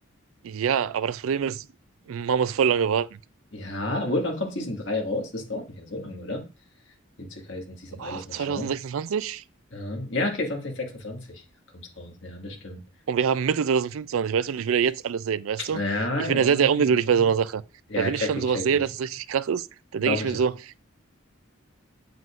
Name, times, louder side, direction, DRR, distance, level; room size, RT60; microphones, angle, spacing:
voice 1, 0.4-1.7 2.1-3.1 8.0-9.4 13.1-15.8 16.2-17.6 18.0-19.7 19.9-20.5, right 7 dB, 85° right, 0.4 m, -24 dB
voice 2, 3.5-6.4 7.2-8.7 9.7-11.4 11.7-12.8 15.7-16.9 17.1-17.2 17.9-18.8 20.0-20.4, left 2 dB, 60° left, 1.8 m, -31 dB
7.6 x 7.6 x 2.5 m
head